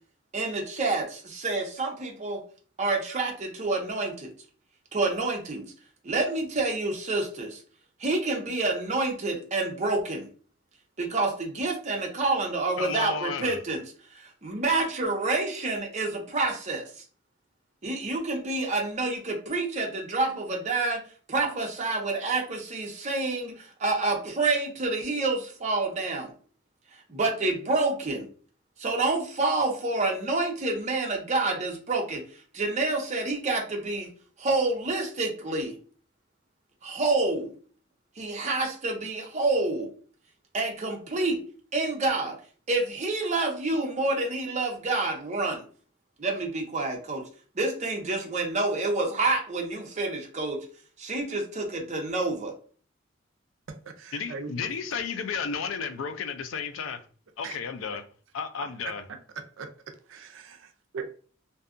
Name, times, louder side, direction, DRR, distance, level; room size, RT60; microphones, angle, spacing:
voice 1, 0.3-2.4 2.8-4.3 4.9-5.6 6.0-7.6 8.0-10.3 11.0-13.8 14.1-16.8 17.8-21.0 21.3-26.3 27.1-28.3 28.8-32.2 32.5-34.1 34.4-35.7 36.8-37.5 38.2-39.9 40.5-41.4 41.7-42.4 42.7-45.6 46.2-47.2 47.6-50.7 51.0-52.5, right 3 dB, 40° right, 0.6 m, -28 dB
voice 2, 12.8-13.5 54.1-57.1 57.4-58.0 58.3-59.0, left 5 dB, 85° left, 0.4 m, -33 dB
voice 3, 53.7-54.5 57.4-57.6 59.4-59.7 60.1-61.1, right 4 dB, 75° right, 0.4 m, -40 dB
2.6 x 2.2 x 2.5 m
head